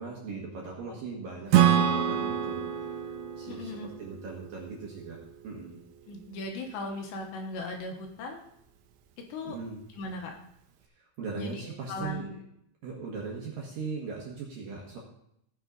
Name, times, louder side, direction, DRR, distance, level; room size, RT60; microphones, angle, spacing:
voice 1, 0.0-3.0 3.3-5.8 9.4-9.8 11.0-12.3 12.8-15.0, right 4 dB, 60° right, -2 dB, 2.5 m, -39 dB
Acoustic guitar / Strum, 1.5-5.1, right 10 dB, 80° right, 2.4 m, -26 dB
voice 2, 3.5-3.9 6.1-8.4 9.3-9.6 10.0-10.3 11.3-11.6 11.9-12.3, left 2 dB, 75° left, 2 dB, 3.0 m, -37 dB
17.0 x 6.2 x 3.9 m, 0.76 s
omnidirectional pair, 5.7 m